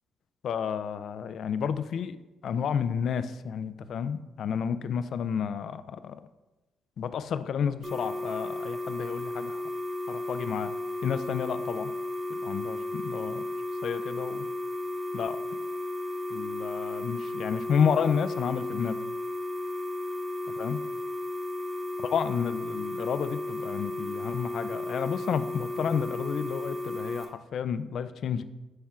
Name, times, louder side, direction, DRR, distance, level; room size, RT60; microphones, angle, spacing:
voice 1, 0.4-2.2 2.4-6.2 7.0-9.6 10.1-10.7 11.0-11.9 12.4-13.4 13.8-14.5 15.1-15.4 16.3-19.0 20.6-20.8 22.0-28.4, left 7 dB, 65° left, 12 dB, 0.3 m, -31 dB
sound 1, 7.8-27.2, left 1 dB, 25° right, 1.3 m, -34 dB
11.0 x 4.3 x 2.3 m, 1.1 s
cardioid pair, 90°, 0 cm